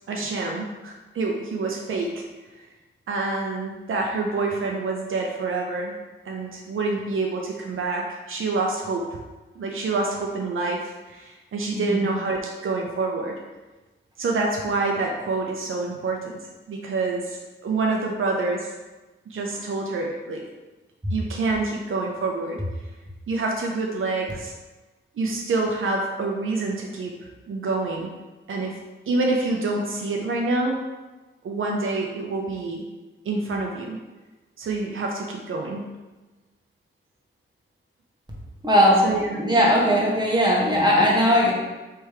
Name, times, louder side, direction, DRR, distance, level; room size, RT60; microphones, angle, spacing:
voice 1, 0.1-2.2 3.1-5.9 6.3-9.2 9.6-13.4 14.2-16.3 16.7-18.7 19.3-20.4 21.1-22.6 23.3-24.5 25.2-27.1 27.5-28.1 28.5-28.8 29.1-30.8 31.4-32.9 33.2-34.0 34.6-35.9 39.0-39.3, right 3 dB, 75° right, 0 dB, 0.6 m, -27 dB
voice 2, 11.7-12.1 38.6-39.1 39.3-41.5, equal, 20° right, -3 dB, 1.3 m, -19 dB
3.4 x 3.1 x 4.7 m, 1.2 s
cardioid pair, 75°, 21 cm